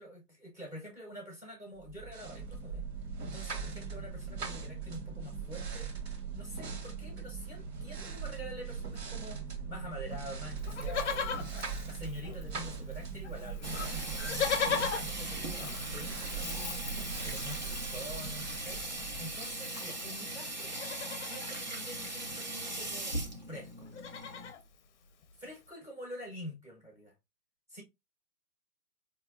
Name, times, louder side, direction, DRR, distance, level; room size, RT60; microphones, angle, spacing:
voice 1, 0.0-2.8 3.2-5.9 6.3-11.4 11.9-20.8 21.2-23.2 23.5-23.9 25.4-27.1 27.7-27.8, equal, 5° right, 0.7 m, -46 dB
sound 1, 1.8-19.7, right 5 dB, 90° right, 1.3 m, -40 dB
Livestock farm animals working animals, 10.6-12.7 12.9-13.0 13.2-20.2 20.6-21.5 22.8-22.9 23.0-23.3 23.7-24.6 25.2-25.3, left 6 dB, 45° left, 0.6 m, -38 dB
Water tap faucet / Sink (filling or washing), 13.6-24.5, right 1 dB, 30° right, 0.4 m, -39 dB
4.3 x 2.8 x 2.5 m
hypercardioid pair, 145°, 49 cm